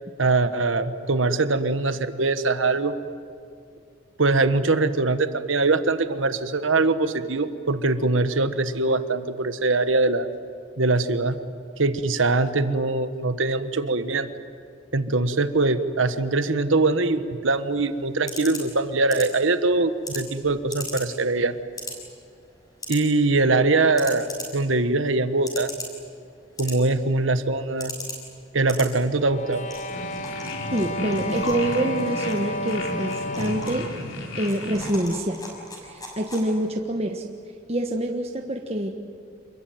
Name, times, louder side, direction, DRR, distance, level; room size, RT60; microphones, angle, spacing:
voice 1, 0.2-2.9 4.2-10.3 10.8-11.4 11.8-14.3 14.9-21.6 22.9-25.7 26.6-27.9 28.5-29.7, right 3 dB, 85° right, 10 dB, 1.4 m, -22 dB
sound 1, 17.4-36.8, left 1 dB, 20° left, 6.4 m, -40 dB
sound 2, 29.2-33.9, left 1 dB, 40° left, 1.2 m, -32 dB
sound 3, 29.9-34.9, left 1 dB, 85° left, 3.7 m, -34 dB
voice 2, 30.7-33.9 34.4-35.4 35.8-37.2 37.7-39.1, right 1 dB, 30° right, 3 dB, 1.3 m, -26 dB
28.0 x 22.0 x 9.3 m, 2.4 s
head